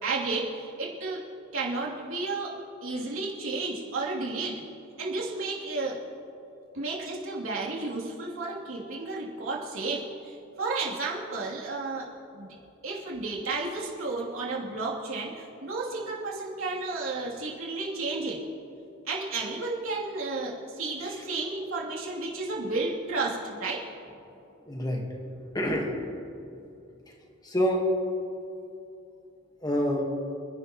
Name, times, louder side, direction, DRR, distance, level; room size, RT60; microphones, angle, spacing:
voice 1, 0.0-1.2 1.5-2.5 2.8-4.6 5.0-6.0 6.7-12.1 12.3-12.5 12.8-18.4 19.1-23.8, right 3 dB, 80° right, -4 dB, 2.8 m, -32 dB
voice 2, 24.7-25.9 27.4-27.8 29.6-30.0, equal, 20° left, 1 dB, 1.3 m, -27 dB
28.5 x 10.5 x 3.0 m, 2.7 s
head